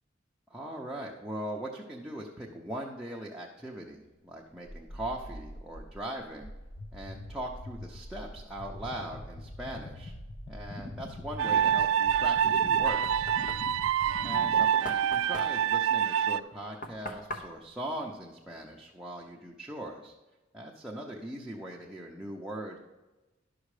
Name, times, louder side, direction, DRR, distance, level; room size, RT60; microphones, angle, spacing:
voice 1, 0.5-6.5 6.9-10.1 10.5-13.6 14.2-20.1 20.5-22.8, right 1 dB, 5° right, -3 dB, 0.8 m, -40 dB
sound 1, 4.7-14.6, left 1 dB, 30° left, 0.6 m, -43 dB
sound 2, 11.4-16.4, right 9 dB, 80° right, 0.3 m, -26 dB
Knock, 12.5-18.9, equal, 45° left, 1.0 m, -44 dB
11.0 x 6.4 x 4.9 m, 1.1 s
head